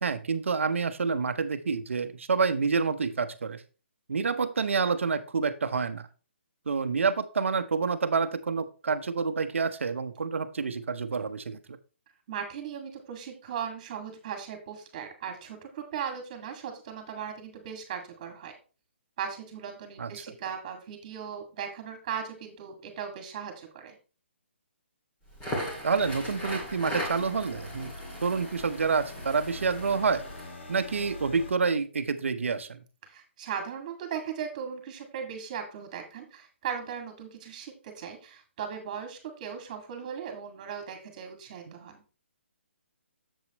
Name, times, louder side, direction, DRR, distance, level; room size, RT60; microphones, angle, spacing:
voice 1, 0.0-3.6 4.1-6.1 6.7-11.8 20.0-20.2 25.8-27.9 28.2-30.2 30.7-32.8, right 5 dB, 80° right, 10 dB, 0.8 m, -28 dB
voice 2, 12.3-18.5 19.2-23.9 33.0-42.0, right 7 dB, 35° right, 5 dB, 2.1 m, -38 dB
Crackle, 25.3-30.5, equal, 15° left, 2.4 m, -38 dB
sound 1, 26.0-31.5, left 2 dB, 70° left, 1.9 m, -43 dB
7.3 x 7.3 x 3.0 m, 0.35 s
hypercardioid pair, 160°, 7 cm